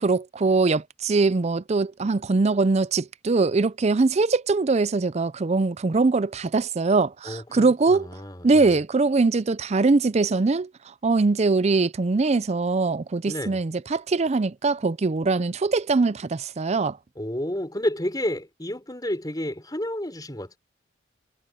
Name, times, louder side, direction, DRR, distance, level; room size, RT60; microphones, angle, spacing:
voice 1, 0.0-8.1 8.4-17.0, right 3 dB, 30° right, 0.4 m, -22 dB
voice 2, 7.2-8.8 13.3-13.6 17.2-20.6, left 1 dB, 20° left, 4.4 m, -30 dB
head